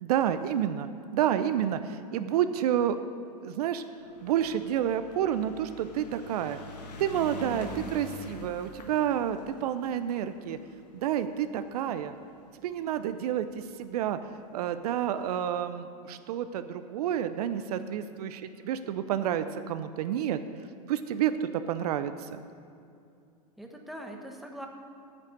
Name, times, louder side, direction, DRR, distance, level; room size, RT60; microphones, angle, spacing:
voice 1, 0.0-3.0 3.4-3.8 4.2-6.6 7.0-10.6 10.9-12.2 12.6-14.2 14.5-20.4 20.9-22.4, right 10 dB, 70° right, 11 dB, 0.6 m, -29 dB
sound 1, 4.0-12.5 13.3-13.4 13.6-13.7 14.0-14.1, left 2 dB, 90° left, 1.4 m, -45 dB
voice 2, 23.6-24.7, right 1 dB, ahead, 1 dB, 1.3 m, -43 dB
9.0 x 6.5 x 8.2 m, 2.5 s
hypercardioid pair, 110°, 20 cm